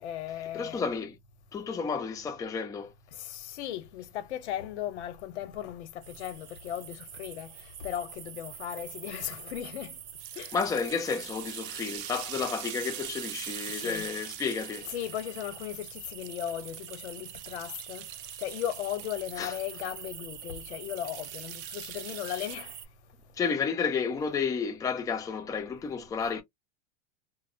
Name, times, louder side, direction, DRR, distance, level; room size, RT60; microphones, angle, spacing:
voice 1, 0.0-0.8 3.2-7.5 7.8-9.9 10.4-10.5 13.7-14.1 14.9-18.1 18.4-22.7, left 11 dB, 75° left, 0.8 m, -37 dB
voice 2, 0.5-1.2 1.5-2.9 10.5-14.9 19.4-19.5 23.4-26.4, left 5 dB, 10° left, 0.5 m, -31 dB
sound 1, 6.0-22.9, right 9 dB, 85° right, 0.7 m, -45 dB
sound 2, 10.2-20.0 20.8-22.6, right 13 dB, 55° right, 0.5 m, -44 dB
2.5 x 2.0 x 2.5 m
supercardioid pair, 130°, 34 cm